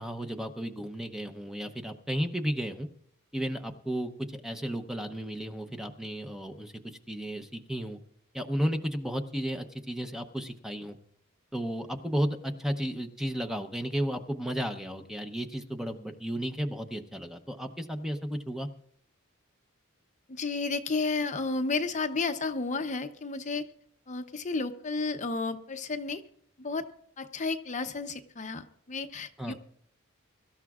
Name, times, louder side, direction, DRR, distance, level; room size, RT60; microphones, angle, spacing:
voice 1, 0.0-2.9 3.3-8.0 8.3-11.0 11.5-18.7 29.4-29.5, equal, ahead, 6 dB, 0.7 m, -33 dB
voice 2, 20.3-23.6 24.1-26.2 26.6-26.8 27.2-29.5, left 3 dB, 35° left, 8 dB, 0.7 m, -32 dB
23.0 x 13.0 x 2.4 m, 0.65 s
head